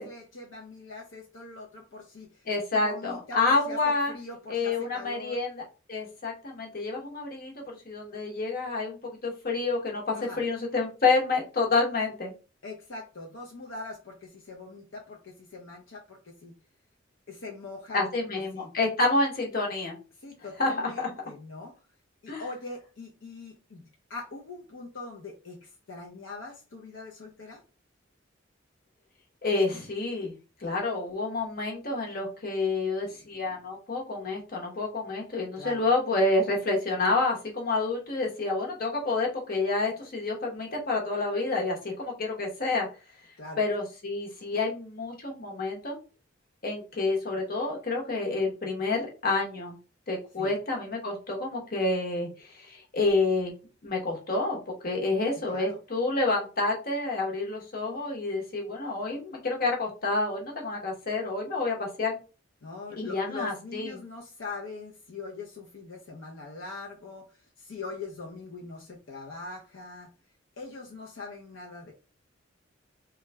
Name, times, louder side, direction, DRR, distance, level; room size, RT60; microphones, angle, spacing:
voice 1, 0.0-2.4 2.7-3.8 4.1-5.4 10.1-10.4 12.6-16.5 17.3-18.0 18.5-18.7 20.2-21.7 22.2-27.6 35.6-35.9 43.4-43.7 50.4-50.5 55.5-55.8 62.6-70.1 70.6-71.9, left 3 dB, 70° left, -1 dB, 0.6 m, -42 dB
voice 2, 2.5-4.1 4.5-5.6 5.9-12.3 17.9-20.0 20.6-21.1 22.3-22.4 29.4-30.3 30.6-42.9 43.6-46.0 46.6-49.7 50.1-53.5 53.8-62.2 63.0-64.0, left 3 dB, 50° left, 0 dB, 1.0 m, -28 dB
3.1 x 2.3 x 3.3 m, 0.34 s
head